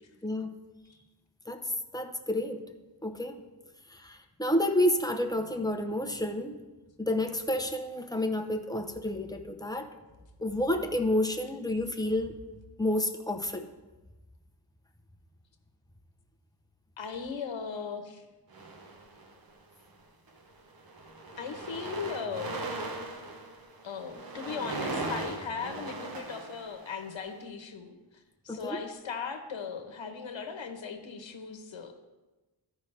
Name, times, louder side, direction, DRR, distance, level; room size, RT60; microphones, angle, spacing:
voice 1, 0.2-0.5 1.5-1.6 1.9-2.6 3.0-3.4 3.9-6.6 7.0-9.9 10.4-12.4 12.8-13.7 28.5-28.8, left 1 dB, 10° left, 4 dB, 0.7 m, -30 dB
voice 2, 17.0-18.2 21.4-22.6 23.8-27.9 28.4-31.9, left 6 dB, 85° left, 6 dB, 0.9 m, -38 dB
sound 1, 18.5-19.5 20.3-20.5 20.8-27.3, right 2 dB, 50° right, 0.9 m, -39 dB
13.5 x 5.1 x 3.3 m, 1.1 s
wide cardioid pair, 95°, 45 cm